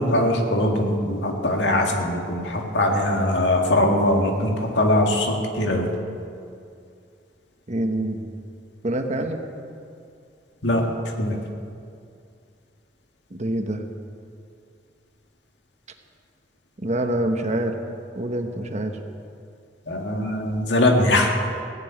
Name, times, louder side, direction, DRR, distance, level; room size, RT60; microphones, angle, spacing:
voice 1, 0.0-5.9 10.6-10.9 11.2-11.4 19.9-21.3, left 1 dB, 80° left, 2 dB, 1.8 m, -21 dB
voice 2, 7.7-8.3 8.8-9.4 13.3-13.8 16.8-17.8 18.2-18.9, right 1 dB, 40° right, 5 dB, 1.1 m, -25 dB
16.5 x 7.1 x 9.7 m, 2.4 s
head